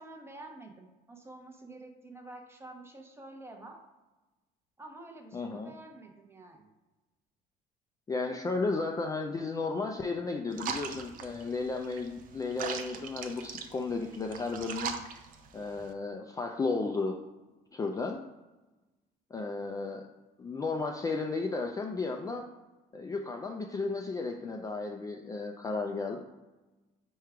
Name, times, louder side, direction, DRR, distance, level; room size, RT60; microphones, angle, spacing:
voice 1, 0.0-3.8 4.8-6.7, right 2 dB, 15° right, 2 dB, 0.7 m, -48 dB
voice 2, 5.3-5.7 8.1-14.9 15.5-17.2 17.7-18.2 19.3-20.0 20.4-22.4 22.9-26.2, left 3 dB, 20° left, 2 dB, 0.3 m, -34 dB
sound 1, 10.5-15.9, right 6 dB, 55° right, 0.5 m, -40 dB
4.5 x 2.2 x 4.7 m, 1.1 s
cardioid pair, 110°, 17 cm